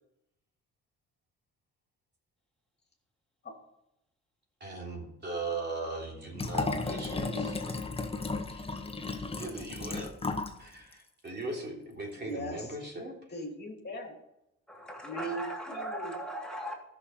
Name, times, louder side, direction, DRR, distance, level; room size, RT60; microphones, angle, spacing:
voice 1, 4.6-7.5 8.5-8.6 9.1-10.1 10.6-13.1, right 3 dB, 35° right, -1 dB, 3.5 m, -39 dB
Liquid, 6.4-10.6 10.9-11.0, left 3 dB, 20° left, 1.2 m, -34 dB
voice 2, 6.8-8.0 12.2-12.7 13.3-14.1 15.0-16.1, equal, 35° left, 1 dB, 2.7 m, -40 dB
voice 3, 14.7-16.7, right 1 dB, ahead, -2 dB, 2.9 m, -38 dB
13.0 x 6.5 x 5.7 m, 0.86 s
cardioid pair, 90°, 30 cm